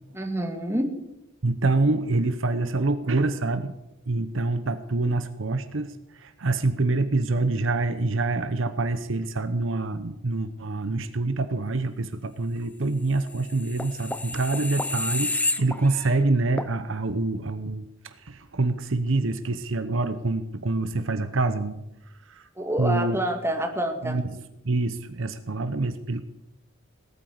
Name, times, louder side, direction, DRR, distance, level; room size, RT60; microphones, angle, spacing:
voice 1, 0.1-0.9 22.6-24.2, right 1 dB, 10° right, 4 dB, 1.9 m, -27 dB
voice 2, 1.4-3.7 4.1-21.8 22.3-22.5 22.8-23.2 24.0-26.2, right 2 dB, 65° right, 11 dB, 0.9 m, -26 dB
sound 1, 13.3-16.2 16.6-16.7, left 2 dB, 5° left, 0.7 m, -30 dB
18.5 x 8.9 x 7.9 m, 0.87 s
head